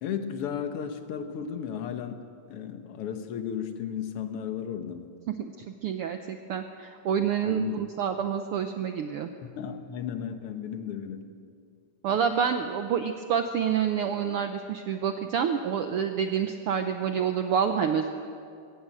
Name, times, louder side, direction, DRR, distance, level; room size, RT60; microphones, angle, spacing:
voice 1, 0.0-5.1 7.5-7.7 9.4-11.3, left 8 dB, 60° left, 7 dB, 2.0 m, -34 dB
voice 2, 5.3-9.3 12.0-18.1, right 7 dB, 70° right, 7 dB, 1.4 m, -28 dB
22.0 x 17.5 x 7.7 m, 2.4 s
omnidirectional pair, 3.3 m